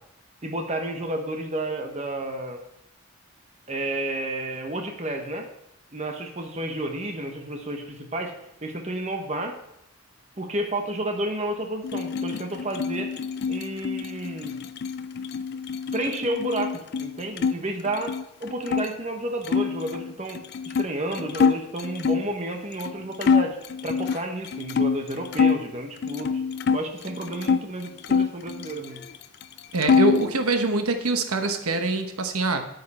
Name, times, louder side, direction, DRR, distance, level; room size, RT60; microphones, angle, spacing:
voice 1, 0.4-2.6 3.7-5.5 5.9-8.3 8.6-9.5 10.4-13.1 13.5-14.6 15.9-18.1 18.4-23.6 23.8-26.4 26.7-29.0, right 1 dB, 30° right, 3 dB, 1.1 m, -31 dB
sound 1, 11.8-17.6 17.9-18.9 19.4-22.3 22.8-22.9 23.2-25.6 26.0-27.6 28.0-29.2 29.4-30.3, left 5 dB, 45° left, 0.3 m, -25 dB
voice 2, 29.7-32.7, right 3 dB, 80° right, 6 dB, 1.1 m, -24 dB
9.4 x 9.4 x 4.3 m, 0.78 s
head